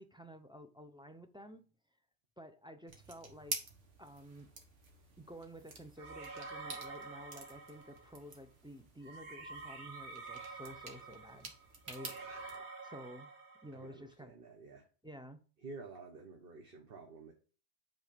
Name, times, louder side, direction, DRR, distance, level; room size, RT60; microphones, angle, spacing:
voice 1, 0.0-1.7 2.4-3.6 4.0-4.5 5.2-11.5 11.9-12.1 12.8-13.3 13.6-14.3 15.0-15.4, equal, 5° right, 0.5 m, -51 dB
sound 1, 2.9-12.6, right 4 dB, 85° right, 1.7 m, -49 dB
sound 2, 6.0-8.2 9.0-13.9, right 4 dB, 70° right, 1.6 m, -48 dB
voice 2, 13.7-14.9 15.6-17.3, right 3 dB, 55° right, 1.2 m, -51 dB
8.0 x 3.9 x 5.1 m
omnidirectional pair, 1.2 m